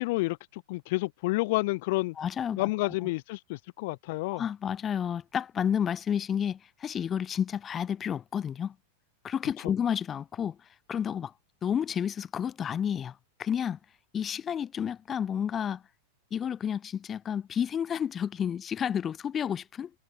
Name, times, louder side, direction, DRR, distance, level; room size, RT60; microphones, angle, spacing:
voice 1, 0.0-2.1 2.6-4.4, left 22 dB, 50° left, 0.6 m, -30 dB
voice 2, 2.2-2.7 4.3-8.8 9.2-10.6 10.9-11.3 11.6-13.8 14.1-15.8 16.3-19.9, left 8 dB, 25° left, 2.2 m, -31 dB
figure-of-eight pair, 90°, 0 cm